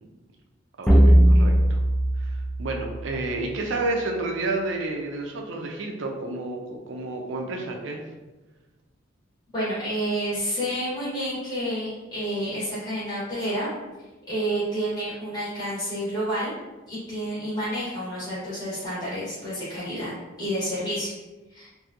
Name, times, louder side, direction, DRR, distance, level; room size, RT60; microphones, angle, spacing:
voice 1, 0.8-1.8 2.2-8.0, right 2 dB, 70° right, 2 dB, 0.4 m, -30 dB
sound 1, 0.9-3.5, right 1 dB, ahead, 0.3 m, -19 dB
voice 2, 9.5-13.7 14.3-16.5 16.9-20.1 20.4-21.1 21.5-21.7, equal, 20° left, -11 dB, 1.0 m, -29 dB
2.7 x 2.6 x 2.4 m, 1.1 s
head